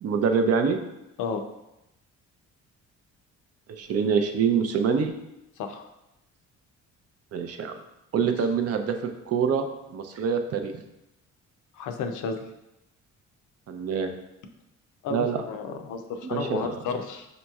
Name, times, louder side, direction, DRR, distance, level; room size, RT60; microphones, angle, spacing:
voice 1, 0.0-0.8 3.7-5.1 7.3-7.7 8.1-9.0 9.3-10.7 13.7-14.1 15.1-15.4 16.3-16.7, right 6 dB, 55° right, 6 dB, 0.5 m, -25 dB
voice 2, 11.7-12.4 15.0-17.3, left 5 dB, 80° left, 6 dB, 0.5 m, -32 dB
5.2 x 2.9 x 2.3 m, 0.90 s
cardioid pair, 90°, 30 cm